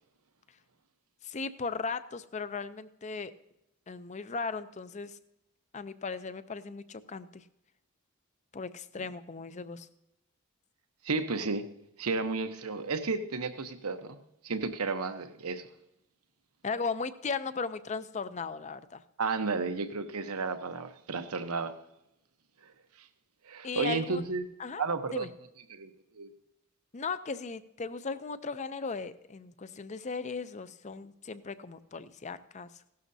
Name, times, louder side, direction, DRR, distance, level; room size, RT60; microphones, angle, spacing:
voice 1, 1.2-3.3 3.9-5.2 5.7-7.4 8.5-9.9 16.6-19.0 23.6-24.2 24.6-24.8 25.1-25.3 26.9-32.8, left 4 dB, 30° left, 14 dB, 0.5 m, -37 dB
voice 2, 11.0-11.6 12.0-14.2 14.4-15.6 19.2-21.7 23.5-24.5 24.8-25.3 25.7-25.9 26.2-26.3, right 4 dB, 85° right, 8 dB, 1.0 m, -32 dB
16.5 x 12.0 x 2.7 m, 0.85 s
head